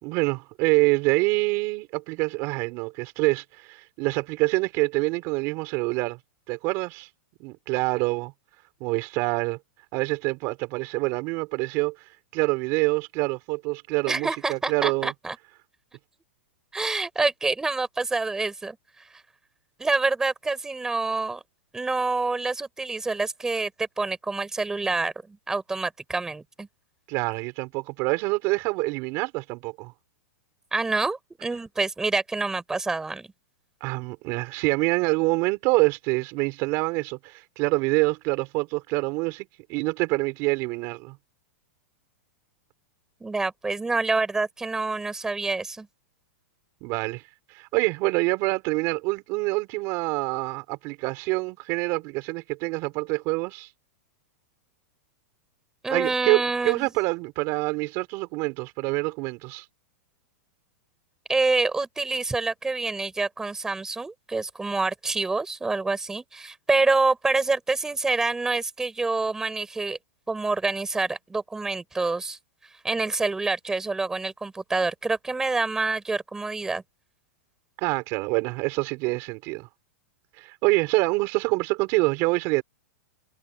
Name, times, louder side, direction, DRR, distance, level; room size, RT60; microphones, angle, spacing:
voice 1, 0.0-6.2 6.5-7.1 7.4-8.3 8.8-9.6 9.9-15.1 27.1-29.9 33.8-41.2 46.8-47.2 47.5-53.7 55.9-59.6 77.8-79.7 80.3-82.6, right 25 dB, 40° right, 5.4 m, -26 dB
voice 2, 14.1-15.3 16.7-18.8 19.8-21.4 21.7-26.7 30.7-33.3 43.2-45.9 55.8-56.9 61.3-70.0 70.3-72.4 72.8-76.8, right 3 dB, 5° right, 6.4 m, -27 dB
supercardioid pair, 155°, 8 cm